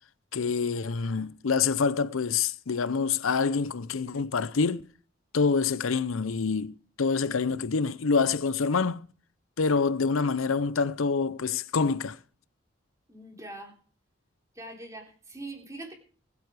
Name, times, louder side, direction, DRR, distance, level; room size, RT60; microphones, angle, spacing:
voice 1, 0.3-4.9 5.3-9.1 9.6-12.2, left 5 dB, 80° left, 0.6 m, -26 dB
voice 2, 13.1-13.7 14.5-15.9, right 2 dB, 15° right, 3.4 m, -42 dB
21.0 x 8.3 x 4.8 m
head